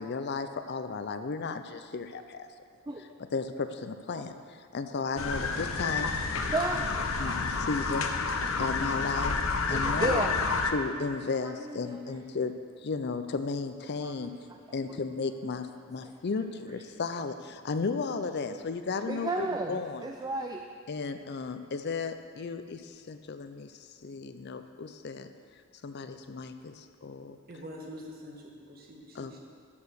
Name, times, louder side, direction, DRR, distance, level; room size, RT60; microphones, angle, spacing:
voice 1, 0.0-2.5 3.3-6.1 7.2-8.1 8.6-10.2 10.7-12.5 12.8-14.3 14.7-20.1 20.9-23.7 24.0-25.3 25.8-27.4 29.1-29.4, left 4 dB, 55° left, 9 dB, 0.5 m, -34 dB
sound 1, 5.2-10.7, left 4 dB, 80° left, 0.8 m, -29 dB
voice 2, 6.5-7.4 9.7-10.3 11.6-12.0 14.0-14.1 14.9-15.0 16.0-16.1 18.5-18.6 19.1-20.6, right 2 dB, 20° right, 3 dB, 0.4 m, -33 dB
voice 3, 27.5-29.4, equal, 50° right, -1 dB, 1.6 m, -45 dB
12.5 x 4.8 x 6.6 m, 2.2 s
head